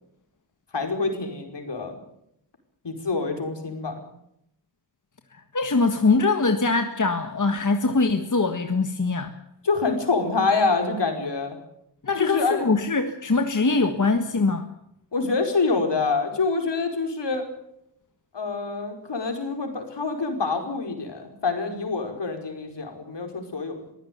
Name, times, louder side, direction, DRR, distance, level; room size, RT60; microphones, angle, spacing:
voice 1, 0.7-2.0 2.8-4.0 9.6-11.6 12.2-12.6 15.1-17.5 18.3-23.8, left 4 dB, 70° left, 4 dB, 5.1 m, -26 dB
voice 2, 5.3-9.4 12.0-14.7, left 3 dB, 45° left, 6 dB, 1.7 m, -22 dB
23.0 x 15.5 x 9.4 m, 0.77 s
wide cardioid pair, 105°, 43 cm